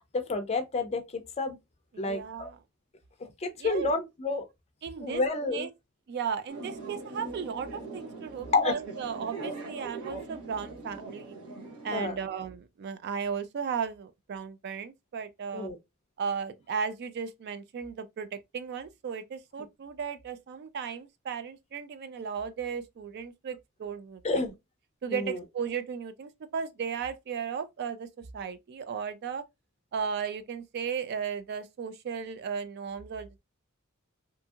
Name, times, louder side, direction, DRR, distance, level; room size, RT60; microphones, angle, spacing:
voice 1, 0.1-1.6 2.0-2.5 3.2-4.4 5.0-5.7 8.5-8.7 11.9-12.1 15.5-15.8 24.2-24.5 25.1-25.4, left 3 dB, 30° left, 0.4 m, -29 dB
voice 2, 1.9-2.6 3.6-3.9 4.8-5.2 5.5-5.7 6.1-11.4 11.8-15.7 16.2-24.2 25.0-28.1 28.3-29.4 29.9-33.4, right 6 dB, 50° right, 0.3 m, -35 dB
sound 1, 6.5-12.1, right 3 dB, 80° right, 1.1 m, -41 dB
2.7 x 2.6 x 2.3 m
head